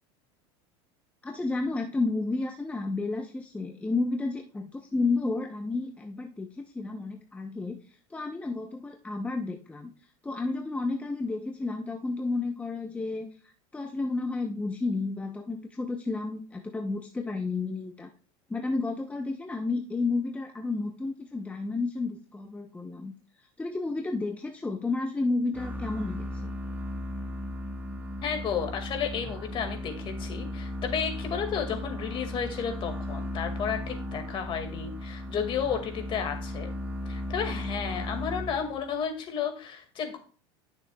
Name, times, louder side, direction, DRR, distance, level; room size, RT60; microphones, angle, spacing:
voice 1, 1.2-9.9 10.2-18.1 18.5-26.5, left 3 dB, 10° left, 3 dB, 0.8 m, -31 dB
sound 1, 25.5-38.9, left 1 dB, 15° right, 1.4 m, -36 dB
voice 2, 28.2-36.7 37.1-40.2, left 7 dB, 40° left, 5 dB, 2.0 m, -32 dB
12.0 x 6.8 x 2.3 m, 0.39 s
supercardioid pair, 125°, 13 cm